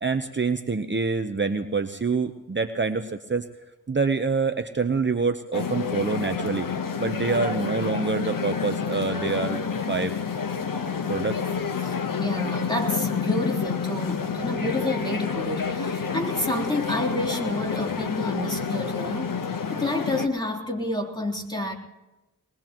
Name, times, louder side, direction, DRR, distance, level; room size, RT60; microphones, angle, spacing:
voice 1, 0.0-3.5 3.9-6.7 7.0-10.1 11.1-11.4, right 4 dB, 35° right, 7 dB, 0.9 m, -26 dB
sound 1, 5.5-20.3, left 6 dB, 75° left, 1.2 m, -29 dB
voice 2, 11.8-19.4 19.7-21.7, left 1 dB, 15° left, -1 dB, 3.4 m, -29 dB
22.5 x 21.0 x 3.0 m, 1.0 s
cardioid pair, 50°, 33 cm